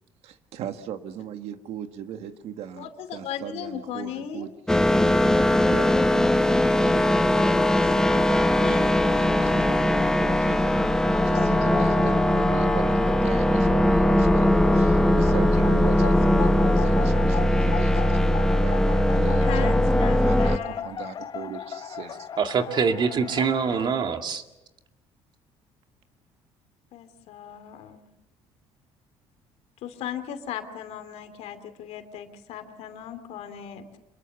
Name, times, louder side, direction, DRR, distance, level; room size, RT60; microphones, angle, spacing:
voice 1, 0.5-4.5 5.7-7.0 7.3-22.3, right 9 dB, 70° right, 8 dB, 1.8 m, -39 dB
voice 2, 2.8-4.5 8.6-9.0 19.4-20.9 26.9-28.0 29.8-33.8, left 10 dB, 75° left, 9 dB, 2.7 m, -37 dB
sound 1, 4.7-20.6, left 1 dB, 5° left, 1.2 m, -20 dB
sound 2, 11.0-23.9, left 8 dB, 40° left, 0.9 m, -37 dB
voice 3, 22.4-24.4, right 6 dB, 45° right, 6 dB, 2.1 m, -24 dB
26.5 x 22.0 x 7.0 m, 0.97 s
cardioid pair, 125°, 11 cm